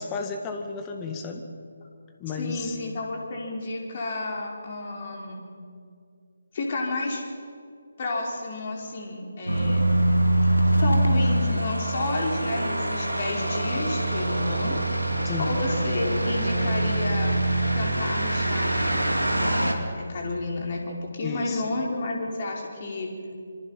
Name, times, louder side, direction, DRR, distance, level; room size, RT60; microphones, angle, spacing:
voice 1, 0.0-1.5 2.2-2.8 15.2-15.6 21.2-21.6, left 4 dB, 15° left, 5 dB, 1.8 m, -33 dB
voice 2, 2.3-5.4 6.5-7.2 8.0-10.0 10.8-14.8 15.4-17.3 17.7-19.1 19.4-23.1, left 2 dB, 35° left, -1 dB, 4.7 m, -31 dB
sound 1, 9.5-19.7, right 1 dB, 85° right, 2.9 m, -24 dB
26.0 x 25.0 x 5.7 m, 2.3 s
figure-of-eight pair, 150°, 0 cm